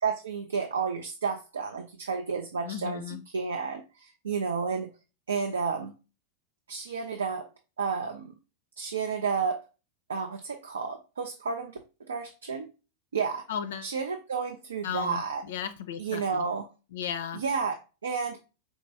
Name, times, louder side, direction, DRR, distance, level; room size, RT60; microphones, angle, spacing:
voice 1, 0.0-4.9 5.3-5.9 6.7-7.5 7.8-8.3 8.8-9.6 10.1-12.7 13.1-13.4 13.8-15.4 16.0-16.7 17.3-18.4, right 5 dB, 70° right, 5 dB, 0.4 m, -31 dB
voice 2, 2.6-3.2 13.5-13.9 14.8-16.4 16.9-17.4, left 9 dB, 60° left, 11 dB, 0.4 m, -35 dB
4.7 x 3.0 x 2.7 m, 0.31 s
figure-of-eight pair, 90°, 0 cm